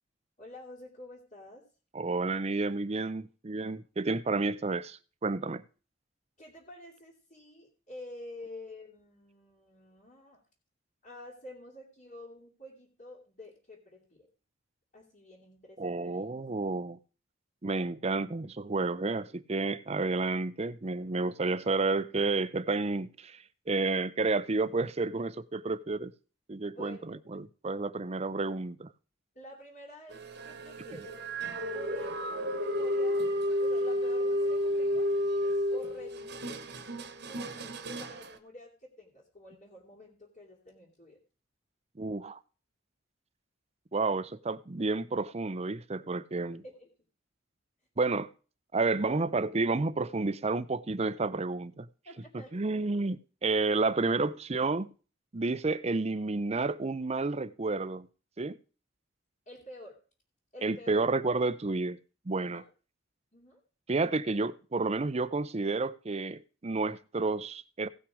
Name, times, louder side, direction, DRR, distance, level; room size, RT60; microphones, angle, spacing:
voice 1, 0.4-1.7 6.4-10.4 11.0-14.3 14.9-16.3 26.6-27.2 29.3-31.2 31.6-33.2 33.6-35.1 35.7-36.6 37.3-41.2 46.6-46.9 52.0-52.6 59.5-60.0 60.5-61.0 62.4-62.7 63.3-63.6, left 1 dB, 40° left, 2.9 m, -49 dB
voice 2, 1.9-5.6 15.8-17.0 17.6-26.1 26.5-28.9 42.0-42.4 43.9-46.6 48.0-48.3 48.7-51.9 52.5-54.9 55.3-58.1 58.4-58.6 60.6-62.0 62.3-62.6 63.9-67.9, right 3 dB, 30° right, 0.6 m, -30 dB
sound 1, 30.1-38.4, equal, 55° right, 1.2 m, -31 dB
17.0 x 6.0 x 4.9 m
head